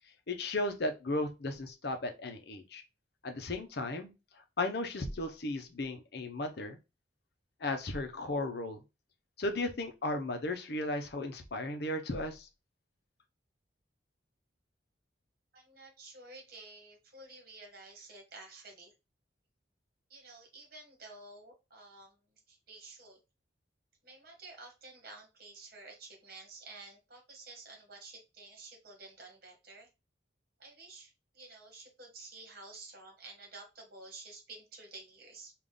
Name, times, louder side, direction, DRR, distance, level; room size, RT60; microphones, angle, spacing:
voice 1, 0.3-2.8 3.2-4.1 4.6-6.8 7.6-8.8 9.4-12.5, left 2 dB, 55° left, 6 dB, 0.7 m, -35 dB
voice 2, 15.5-18.9 20.1-22.2 22.5-23.2 24.0-29.9 30.6-35.5, right 3 dB, 50° right, 2 dB, 1.4 m, -51 dB
3.5 x 2.5 x 3.8 m, 0.26 s
head